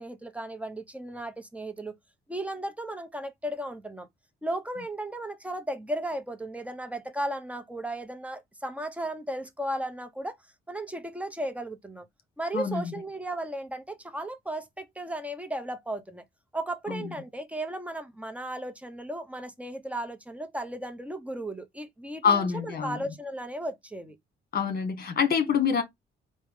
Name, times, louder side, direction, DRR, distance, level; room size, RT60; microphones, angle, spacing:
voice 1, 0.0-2.0 2.3-4.1 4.4-10.4 10.7-12.1 12.4-16.2 16.5-24.2, right 1 dB, 5° right, 0.7 m, -35 dB
voice 2, 22.2-23.0 24.5-25.8, left 6 dB, 50° left, 1.3 m, -25 dB
4.6 x 2.1 x 3.5 m
cardioid pair, 90°, 20 cm